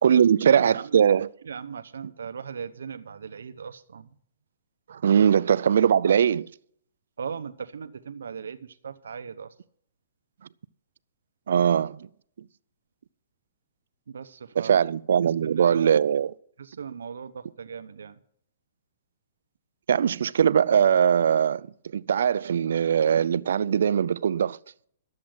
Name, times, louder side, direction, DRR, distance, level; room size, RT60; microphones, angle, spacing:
voice 1, 0.0-1.3 4.9-6.5 11.5-12.1 14.6-16.3 19.9-21.7 21.9-24.6, right 8 dB, 70° right, 0.4 m, -21 dB
voice 2, 0.5-1.0 1.5-4.1 5.2-5.3 7.2-9.5 14.1-14.8 15.4-15.8 16.7-18.1, right 6 dB, 90° right, 0.8 m, -38 dB
12.0 x 7.5 x 7.7 m
hypercardioid pair, 160°, 0 cm